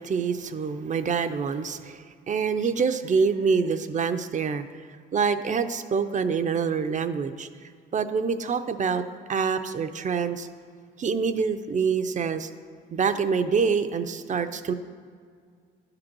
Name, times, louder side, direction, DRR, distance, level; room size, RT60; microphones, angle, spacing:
voice 1, 0.0-4.7 5.1-7.5 7.9-9.0 9.3-10.5 11.0-12.5 12.9-14.7, right 5 dB, 40° right, 10 dB, 0.5 m, -26 dB
11.0 x 3.9 x 6.0 m, 2.1 s
cardioid pair, 90°, 20 cm